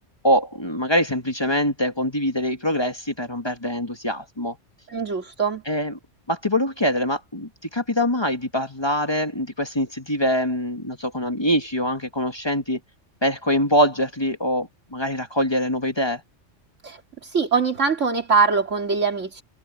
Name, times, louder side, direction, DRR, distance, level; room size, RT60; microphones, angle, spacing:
voice 1, 0.2-4.6 5.7-5.9 6.3-12.8 13.2-16.2, equal, 20° left, 1.8 m, -24 dB
voice 2, 4.9-5.6 16.8-17.0 17.3-19.4, right 5 dB, 80° right, 2.9 m, -22 dB
omnidirectional pair, 1.3 m